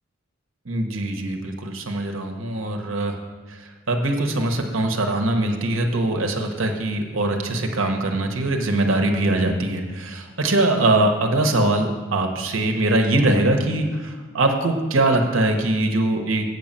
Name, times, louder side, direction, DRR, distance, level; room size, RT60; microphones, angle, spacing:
voice 1, 0.6-3.2 3.5-16.5, right 2 dB, 85° right, 4 dB, 1.1 m, -22 dB
8.3 x 5.4 x 7.4 m, 1.4 s
head